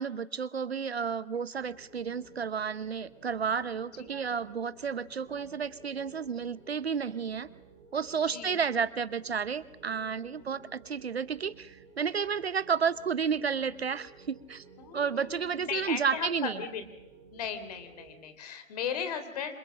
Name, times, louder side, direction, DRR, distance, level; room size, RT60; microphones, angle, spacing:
voice 1, 0.0-7.5 7.9-14.6 14.9-16.6, right 6 dB, 50° right, 17 dB, 0.9 m, -31 dB
sound 1, 1.5-18.2, right 5 dB, 25° right, 7.3 m, -55 dB
voice 2, 4.0-4.5 8.2-8.6 10.3-10.7 14.8-16.8 17.3-19.6, left 7 dB, 30° left, 10 dB, 3.4 m, -37 dB
27.5 x 27.0 x 7.5 m, 0.87 s
figure-of-eight pair, 150°, 40 cm